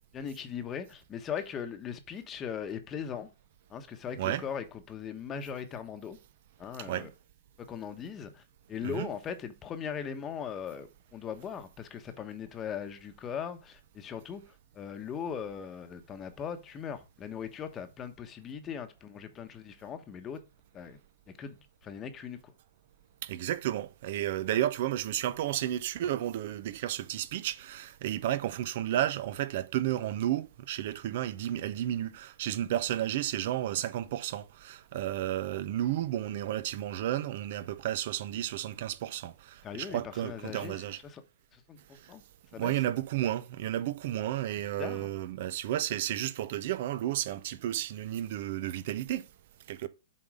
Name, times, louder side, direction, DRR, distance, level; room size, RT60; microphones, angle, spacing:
voice 1, 0.1-3.3 3.7-6.2 6.6-7.1 7.6-8.4 8.7-14.4 14.7-20.4 20.7-21.0 21.3-22.4 39.6-41.2 41.5-42.2 42.5-42.8 44.5-45.1, left 7 dB, 20° left, 1.1 m, -39 dB
voice 2, 6.8-7.1 8.8-9.1 23.2-41.0 42.6-49.2 49.7-49.9, right 12 dB, 55° right, 0.7 m, -32 dB
7.4 x 4.1 x 5.0 m
hypercardioid pair, 140°, 0 cm